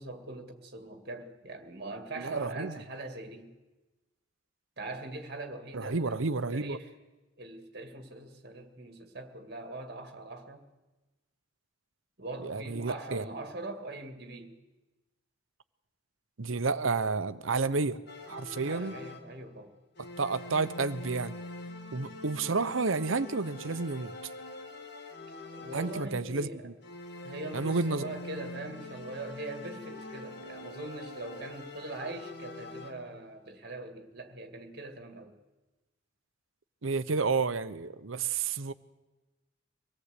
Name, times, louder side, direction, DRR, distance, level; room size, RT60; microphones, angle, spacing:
voice 1, 0.0-3.5 4.8-6.2 6.5-6.9 7.4-10.6 12.2-14.6 18.6-19.7 25.5-26.7 27.2-35.3, right 2 dB, 50° right, 2.2 m, -42 dB
voice 2, 2.2-2.8 5.7-6.8 12.4-13.2 16.4-18.0 18.3-18.9 20.0-21.4 21.9-24.1 25.7-26.7 27.5-28.0 36.8-38.7, right 4 dB, 85° right, 0.9 m, -30 dB
sound 1, 18.1-19.6 20.0-26.4 26.8-33.3, left 2 dB, 55° left, 2.0 m, -44 dB
24.5 x 18.0 x 8.2 m
head